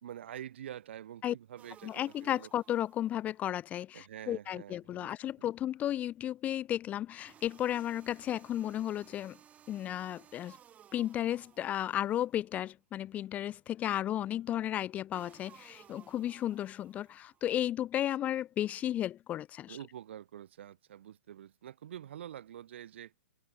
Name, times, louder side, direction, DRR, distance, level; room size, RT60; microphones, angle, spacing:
voice 1, 0.0-2.5 3.9-5.5 19.7-23.1, right 10 dB, 65° right, 1.0 m, -47 dB
sound 1, 1.6-3.5 7.3-12.5 15.1-17.5, right 9 dB, 20° right, 1.2 m, -60 dB
voice 2, 1.8-9.4 9.7-10.6 10.9-19.8, left 12 dB, 20° left, 0.4 m, -34 dB
hypercardioid pair, 125°, 7 cm